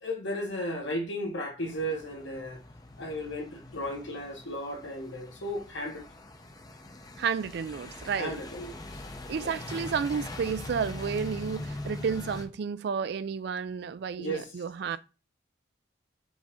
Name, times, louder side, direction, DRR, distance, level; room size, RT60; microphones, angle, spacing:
voice 1, 0.0-2.6 3.0-6.0 8.2-8.8 9.4-9.5 14.2-14.5, equal, 75° left, 1.3 m, -34 dB
sound 1, 1.6-12.5, left 2 dB, 20° left, 0.5 m, -42 dB
voice 2, 7.2-8.4 9.3-15.0, right 6 dB, 60° right, 0.3 m, -31 dB
5.1 x 2.6 x 3.5 m
head